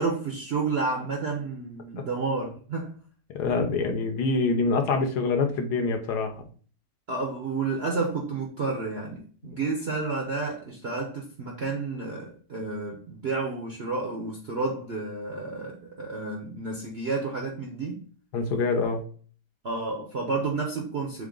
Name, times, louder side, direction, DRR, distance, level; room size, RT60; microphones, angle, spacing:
voice 1, 0.0-2.9 7.1-18.0 19.6-21.3, right 3 dB, 60° right, 0.7 m, -30 dB
voice 2, 3.3-6.4 18.3-19.0, left 4 dB, 70° left, 1.2 m, -25 dB
3.7 x 3.6 x 3.7 m
omnidirectional pair, 1.9 m